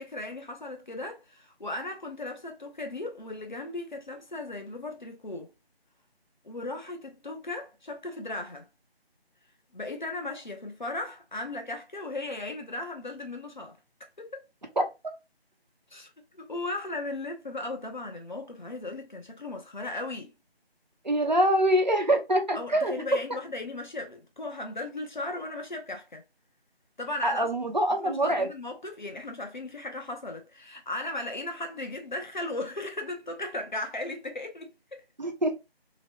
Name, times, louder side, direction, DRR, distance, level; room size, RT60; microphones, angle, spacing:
voice 1, 0.0-5.5 6.4-8.7 9.7-13.8 14.2-14.4 15.9-16.1 16.3-20.3 22.5-26.2 27.0-27.5 28.0-35.0, left 2 dB, 50° left, 0.7 m, -36 dB
voice 2, 21.0-22.9 27.2-28.5 35.2-35.6, right 1 dB, 45° right, 0.6 m, -24 dB
2.9 x 2.1 x 2.8 m
figure-of-eight pair, 165°, 31 cm